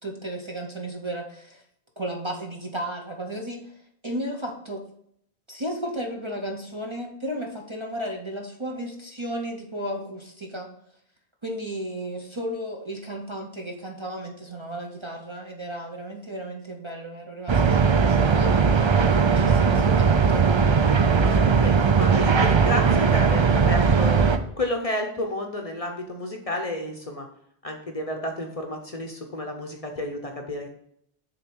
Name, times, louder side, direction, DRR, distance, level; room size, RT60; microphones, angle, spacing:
voice 1, 0.0-1.6 2.0-3.7 4.0-4.8 5.5-10.7 11.4-20.5, right 1 dB, 30° right, 1 dB, 0.8 m, -34 dB
sound 1, 17.5-24.4, right 5 dB, 45° right, 0.3 m, -19 dB
voice 2, 21.6-24.2 24.6-27.3 27.6-30.7, left 1 dB, 35° left, 4 dB, 0.8 m, -31 dB
6.7 x 3.8 x 6.1 m, 0.70 s
omnidirectional pair, 1.1 m